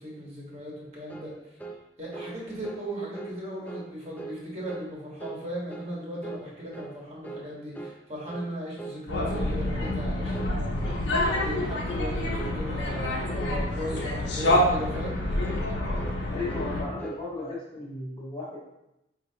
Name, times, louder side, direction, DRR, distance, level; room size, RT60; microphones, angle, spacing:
voice 1, 0.0-1.3 2.0-15.2, equal, 35° right, -5 dB, 1.3 m, -37 dB
sound 1, 1.1-1.3 1.6-1.8 2.1-2.3 2.6-2.9 3.1-3.4 3.7-3.9 4.2-4.4 4.7-4.9 5.2-5.4 5.7-5.9 6.2-6.5 6.7-7.0 7.2-7.5 7.7-8.0 8.3-8.5 8.8-9.0 9.3-9.5 9.8-10.0 10.3-10.5 10.8-11.0 11.3-11.6 11.8-12.1 12.4-12.6 12.9-13.1 13.4-13.6 13.9-14.1 14.4-14.7 14.9-15.2 15.4-15.7 15.9-16.2 16.5-16.7 17.0-17.2, right 3 dB, 10° left, 0.3 m, -40 dB
sound 2, 9.1-16.8, left 1 dB, 85° left, 0.9 m, -27 dB
voice 2, 16.3-18.7, left 2 dB, 35° left, -8 dB, 0.8 m, -35 dB
5.3 x 2.8 x 2.8 m, 0.88 s
head